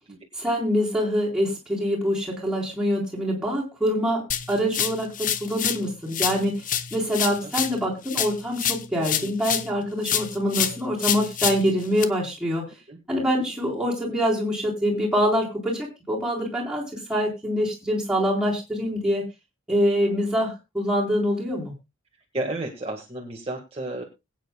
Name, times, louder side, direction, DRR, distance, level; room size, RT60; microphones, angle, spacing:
voice 1, 0.3-6.7 6.9-12.7 13.1-19.2 19.7-21.7, equal, 5° right, -3 dB, 3.7 m, -25 dB
sound 1, 4.3-5.8 6.1-9.7 10.0-12.0, left 9 dB, 35° left, 0.8 m, -27 dB
voice 2, 22.3-24.0, right 2 dB, 25° right, 1 dB, 1.6 m, -31 dB
22.0 x 9.2 x 2.2 m, 0.25 s
head